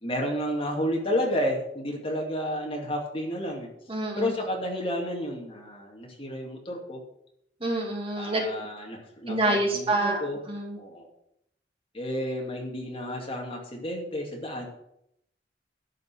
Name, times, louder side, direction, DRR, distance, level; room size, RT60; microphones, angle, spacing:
voice 1, 0.0-3.7 4.2-7.0 8.1-10.4 10.8-11.1 11.9-14.6, equal, 30° left, 0 dB, 2.5 m, -31 dB
voice 2, 3.9-4.3 7.6-8.4 9.3-10.2 10.5-10.8, right 2 dB, 30° right, 0 dB, 2.2 m, -27 dB
11.5 x 5.5 x 7.8 m, 0.76 s
head